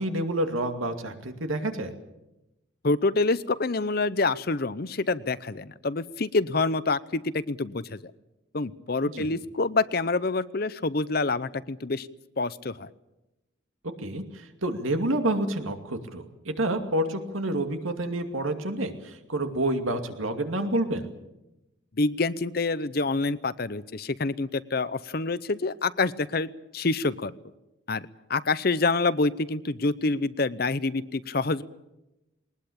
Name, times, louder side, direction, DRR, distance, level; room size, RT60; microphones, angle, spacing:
voice 1, 0.0-1.9 9.1-9.3 14.0-21.1, right 1 dB, 85° right, 6 dB, 2.5 m, -28 dB
voice 2, 2.8-8.0 8.5-12.1 12.4-12.9 22.0-27.3 27.9-28.0 28.3-31.6, left 3 dB, 50° left, 16 dB, 0.7 m, -27 dB
20.5 x 20.0 x 8.7 m, 0.94 s
head